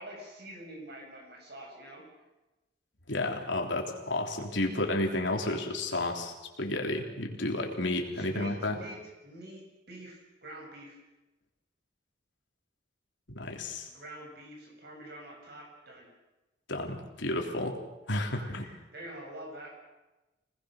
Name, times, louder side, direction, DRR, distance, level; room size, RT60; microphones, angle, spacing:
voice 1, 0.0-2.0 8.2-9.0 9.2-9.6 9.9-11.0 13.5-16.1 18.3-19.8, right 1 dB, 60° right, 0 dB, 7.5 m, -46 dB
voice 2, 3.1-8.7 13.3-13.9 16.7-17.8 18.1-18.6, left 2 dB, 75° left, 2 dB, 3.5 m, -31 dB
27.0 x 19.5 x 6.5 m, 1.1 s
head